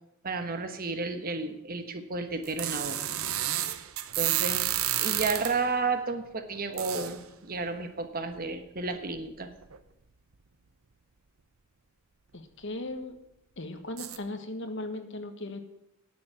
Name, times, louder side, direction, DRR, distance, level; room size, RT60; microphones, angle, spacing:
voice 1, 0.2-3.0 4.2-9.5, right 3 dB, 45° right, 8 dB, 1.2 m, -32 dB
sound 1, 2.4-5.7 6.8-7.2 8.4-8.5 9.1-9.2 9.6-9.8 14.0-14.2, right 12 dB, 85° right, 0.8 m, -30 dB
voice 2, 12.3-13.2 13.6-15.6, left 2 dB, 60° left, 7 dB, 1.5 m, -37 dB
10.5 x 7.0 x 9.0 m, 0.85 s
head